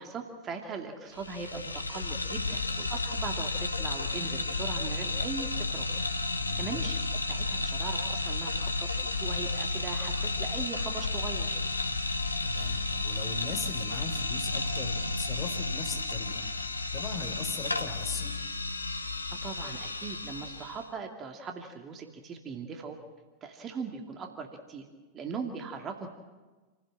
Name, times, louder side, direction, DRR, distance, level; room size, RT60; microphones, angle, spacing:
voice 1, 0.0-5.9 6.3-11.6 19.3-23.0 23.4-24.9 25.1-26.1, right 5 dB, 25° right, 4 dB, 2.4 m, -40 dB
sound 1, 1.1-20.8, left 3 dB, 80° left, 1.1 m, -32 dB
voice 2, 6.4-6.8 12.4-16.5 16.9-18.3, left 4 dB, 25° left, 4 dB, 4.2 m, -39 dB
28.5 x 16.0 x 7.6 m, 1.3 s
figure-of-eight pair, 90°, 0 cm